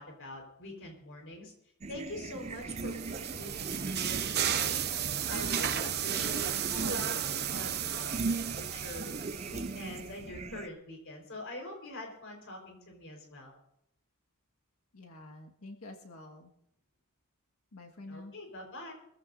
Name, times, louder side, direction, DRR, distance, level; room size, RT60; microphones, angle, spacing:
voice 1, 0.0-1.5 1.9-4.8 5.3-9.1 9.5-13.5 18.1-18.9, left 1 dB, 60° left, 2 dB, 4.5 m, -44 dB
sound 1, 1.8-10.7, right 3 dB, 30° right, 0.4 m, -40 dB
sound 2, 2.5-10.0, right 9 dB, 45° right, 0.9 m, -34 dB
voice 2, 14.9-16.5 17.7-18.3, left 2 dB, 85° left, 1 dB, 1.8 m, -48 dB
23.5 x 15.0 x 2.7 m, 0.75 s
head